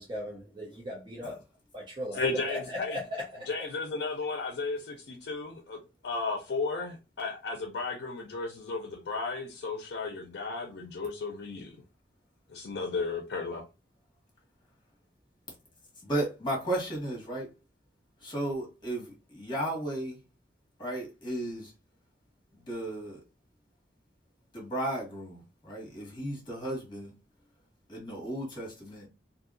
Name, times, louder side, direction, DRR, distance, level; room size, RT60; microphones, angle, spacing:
voice 1, 0.0-1.3 1.7-3.5, left 1 dB, 25° right, 0.7 m, -38 dB
voice 2, 2.1-3.0 3.5-11.8 12.5-13.6, left 3 dB, 65° left, 0.5 m, -34 dB
voice 3, 16.0-17.5 18.2-20.2 20.8-21.7 22.7-23.2 24.5-27.1 27.9-29.1, right 1 dB, 25° left, 1.4 m, -34 dB
2.7 x 2.7 x 2.5 m
head